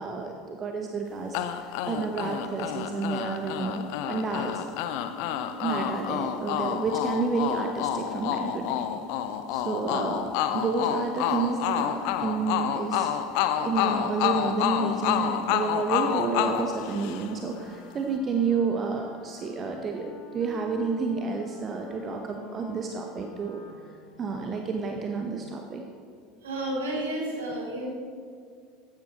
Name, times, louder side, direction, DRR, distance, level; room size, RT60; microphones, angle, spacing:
voice 1, 0.0-4.6 5.6-8.9 9.5-23.6 24.2-25.8, right 4 dB, 30° right, 3 dB, 0.8 m, -30 dB
sound 1, 1.3-17.5, left 10 dB, 55° left, 0.6 m, -29 dB
Wind instrument woodwind instrument, 17.0-24.9, left 4 dB, 40° left, 1.4 m, -49 dB
voice 2, 26.4-27.9, right 1 dB, 70° right, -3 dB, 2.7 m, -31 dB
14.5 x 10.5 x 2.9 m, 2.1 s
figure-of-eight pair, 70°, 0 cm